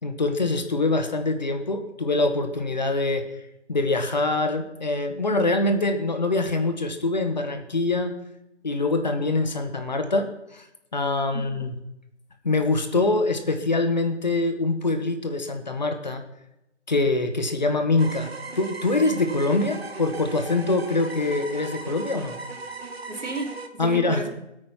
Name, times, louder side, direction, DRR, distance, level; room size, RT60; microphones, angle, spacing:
voice 1, 0.0-3.2 3.7-8.1 8.6-10.3 10.5-10.6 10.9-11.7 12.4-16.2 16.9-18.3 18.5-22.4 23.8-24.2, left 2 dB, 35° left, 7 dB, 1.5 m, -24 dB
voice 2, 11.3-11.7 23.1-24.3, right 3 dB, 75° right, 3 dB, 3.3 m, -33 dB
sound 1, 18.0-23.7, right 3 dB, 55° right, 1.8 m, -38 dB
20.5 x 8.8 x 5.7 m, 0.87 s
hypercardioid pair, 180°, 36 cm